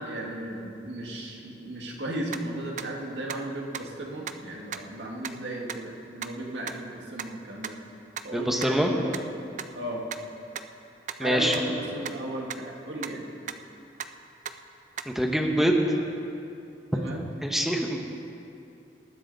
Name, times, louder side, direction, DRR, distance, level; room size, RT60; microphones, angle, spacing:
voice 1, 0.0-7.8 8.2-9.2 9.7-10.0 11.2-13.2 16.9-17.3, right 1 dB, 90° right, -1 dB, 1.9 m, -35 dB
sound 1, 2.3-2.4 2.8-2.9 3.3-3.4 3.7-3.8 4.3-4.4 4.7-4.8 5.2-5.3 5.7-5.8 6.2-6.3 6.7-6.8 7.2-7.3 7.6-7.7 8.2-8.3 8.6-8.7 9.1-9.2 9.6-9.7 10.1-10.2 10.6-10.7 11.1-11.2 11.5-11.6 12.1-12.2 12.5-12.6 13.0-13.1 13.5-13.6 14.0-14.1 14.5-14.6 15.0-15.1, right 8 dB, 45° right, 0.4 m, -34 dB
voice 2, 8.3-8.9 11.2-11.6 15.1-15.8 17.4-18.0, equal, ahead, 2 dB, 1.1 m, -24 dB
19.5 x 9.9 x 4.1 m, 2.7 s
head